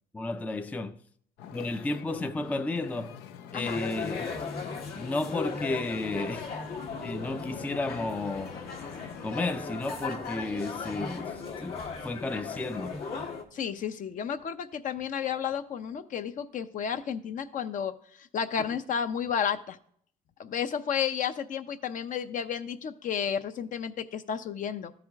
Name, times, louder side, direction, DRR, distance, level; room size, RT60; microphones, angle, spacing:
voice 1, 0.1-0.9 1.5-3.2 3.5-4.3 5.0-6.5 7.0-8.5 9.2-11.8 12.0-13.0, left 2 dB, 10° left, 0.4 m, -32 dB
Wind / Ocean, 1.4-9.3, left 8 dB, 85° left, 0.6 m, -46 dB
sound 1, 3.6-13.4, left 5 dB, 65° left, 1.6 m, -37 dB
voice 2, 13.5-17.9 18.2-19.8 20.4-24.9, left 8 dB, 50° left, 0.7 m, -32 dB
13.0 x 4.9 x 3.5 m
cardioid pair, 110°, 17 cm